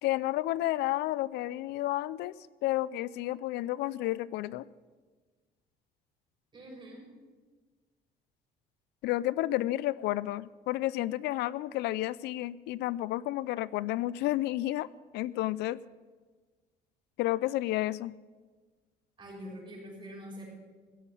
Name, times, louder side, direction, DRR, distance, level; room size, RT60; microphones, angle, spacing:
voice 1, 0.0-2.3 2.6-4.7 9.0-14.9 15.1-15.8 17.2-18.1, left 16 dB, 80° left, 20 dB, 0.4 m, -31 dB
voice 2, 6.5-7.1 19.2-20.5, equal, 30° right, -2 dB, 6.2 m, -44 dB
16.0 x 7.3 x 9.8 m, 1.4 s
cardioid pair, 110°, 17 cm